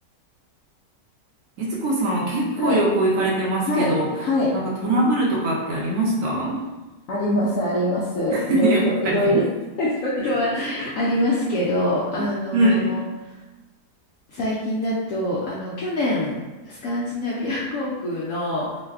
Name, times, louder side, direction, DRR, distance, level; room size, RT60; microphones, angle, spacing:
voice 1, 1.6-4.1 4.5-6.6 8.3-9.4 10.2-10.3 10.8-10.9 12.5-12.9, right 1 dB, 65° right, -3 dB, 1.1 m, -22 dB
voice 2, 3.6-4.5 7.1-9.4 9.8-13.3 14.3-18.8, left 1 dB, 70° left, -6 dB, 0.8 m, -24 dB
3.2 x 2.1 x 3.4 m, 1.1 s
omnidirectional pair, 1.9 m